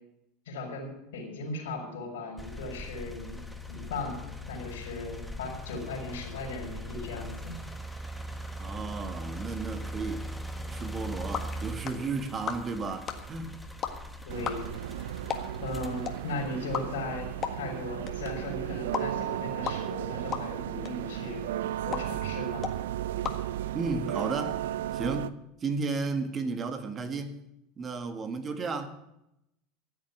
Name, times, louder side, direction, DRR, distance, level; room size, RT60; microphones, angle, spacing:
voice 1, 0.4-3.4 3.7-4.2 4.5-7.6 14.2-14.6 15.6-17.3 17.5-21.4 21.8-22.7, left 2 dB, 85° left, 4.5 m, -37 dB
sound 1, 2.4-17.4 18.0-19.2, equal, ahead, 1.2 m, -41 dB
voice 2, 8.6-10.3 10.7-13.6 23.7-25.3 25.6-27.3 27.8-28.9, right 4 dB, 30° right, 1.6 m, -33 dB
sound 2, 10.9-24.2, left 7 dB, 35° left, 1.6 m, -40 dB
sound 3, 14.3-25.3, right 12 dB, 85° right, 0.5 m, -34 dB
14.0 x 7.7 x 8.2 m
supercardioid pair, 115°, 0 cm